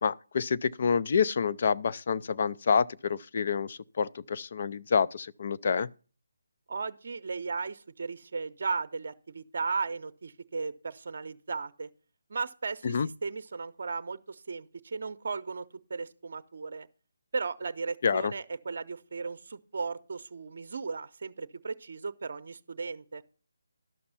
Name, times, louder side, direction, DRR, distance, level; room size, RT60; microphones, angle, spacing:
voice 1, 0.0-5.9 12.8-13.1 18.0-18.3, left 6 dB, 50° left, 0.4 m, -28 dB
voice 2, 6.7-11.9 12.3-16.9 17.3-23.2, right 4 dB, 55° right, 0.7 m, -36 dB
12.0 x 5.9 x 5.6 m
figure-of-eight pair, 160°, 0 cm